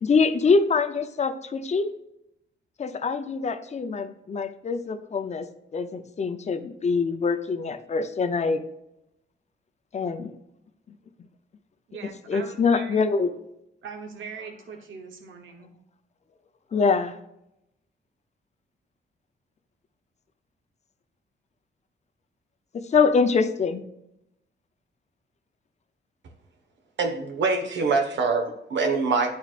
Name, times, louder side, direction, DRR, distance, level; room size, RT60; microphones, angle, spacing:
voice 1, 0.0-1.9 2.8-5.5 5.7-8.6 9.9-10.3 12.3-13.3 16.7-17.2 22.7-23.8, left 4 dB, 35° left, 8 dB, 0.6 m, -24 dB
voice 2, 11.9-13.0 13.8-15.7, right 5 dB, 85° right, 3 dB, 1.0 m, -41 dB
voice 3, 27.0-29.3, right 4 dB, 70° right, 4 dB, 1.3 m, -24 dB
11.0 x 4.6 x 2.5 m, 0.84 s
wide cardioid pair, 165°, 20 cm